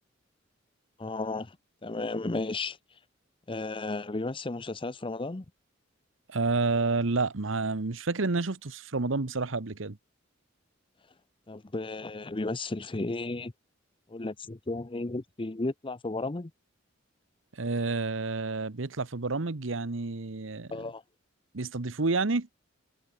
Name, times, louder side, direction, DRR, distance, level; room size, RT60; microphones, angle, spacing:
voice 1, 1.0-1.6 1.8-2.8 3.5-5.4 11.5-13.5 14.1-16.5 20.7-21.0, left 2 dB, 25° left, 0.7 m, -34 dB
voice 2, 6.3-10.0 17.5-20.7 21.5-22.5, right 3 dB, 75° right, 1.1 m, -29 dB
head